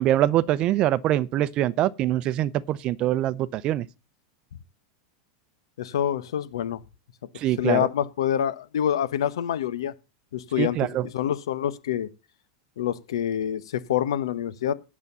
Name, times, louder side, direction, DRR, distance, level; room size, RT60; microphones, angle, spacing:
voice 1, 0.0-3.9 7.3-7.9 10.6-11.1, right 13 dB, 40° right, 0.6 m, -24 dB
voice 2, 5.8-6.8 7.6-9.9 10.3-10.9 11.1-12.1 12.8-14.7, left 10 dB, 90° left, 1.0 m, -26 dB
8.4 x 7.4 x 6.8 m
supercardioid pair, 135°, 3 cm